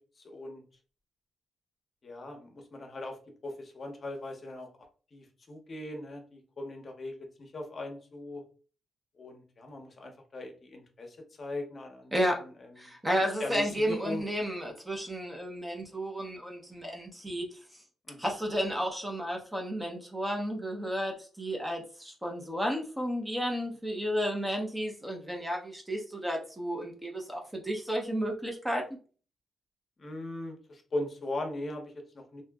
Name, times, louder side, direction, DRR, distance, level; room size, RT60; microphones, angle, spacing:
voice 1, 0.2-0.6 2.0-3.2 3.4-4.7 5.1-8.4 9.2-12.9 13.4-14.2 18.1-18.3 30.0-32.4, left 2 dB, 40° left, 3 dB, 0.7 m, -39 dB
voice 2, 12.1-12.5 12.8-17.5 18.2-28.8, equal, 10° right, 1 dB, 0.6 m, -32 dB
2.8 x 2.5 x 2.3 m, 0.38 s
cardioid pair, 130°, 0 cm